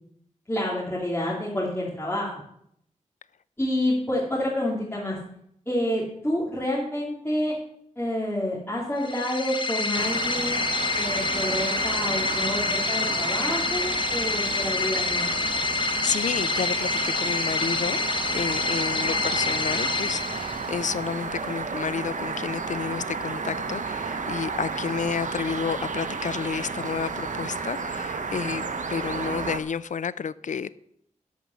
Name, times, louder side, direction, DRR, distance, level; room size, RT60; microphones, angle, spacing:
voice 1, 0.5-2.3 3.6-5.2 5.7-7.6 8.0-15.3 18.9-19.2, left 1 dB, 15° left, 2.6 m, -28 dB
sound 1, 9.0-20.9, left 3 dB, 40° left, 1.1 m, -27 dB
sound 2, 9.9-29.6, right 4 dB, 70° right, 0.9 m, -32 dB
voice 2, 15.8-30.7, left 6 dB, 70° left, 0.5 m, -31 dB
11.5 x 5.3 x 7.0 m
wide cardioid pair, 90°, 13 cm